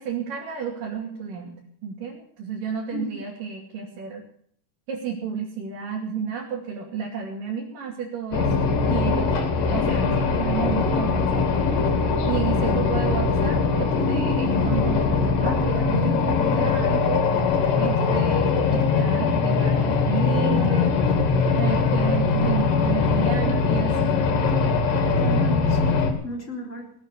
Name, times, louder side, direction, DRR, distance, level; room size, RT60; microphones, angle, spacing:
voice 1, 0.0-4.2 4.9-11.4 12.3-17.3 17.8-21.0 21.5-24.2, right 7 dB, 75° right, -3 dB, 4.3 m, -31 dB
voice 2, 2.9-3.2 25.2-26.9, left 1 dB, 20° left, 0 dB, 3.7 m, -33 dB
sound 1, 8.3-26.1, left 4 dB, 75° left, 3.9 m, -21 dB
19.0 x 8.9 x 8.5 m, 0.63 s
omnidirectional pair, 3.9 m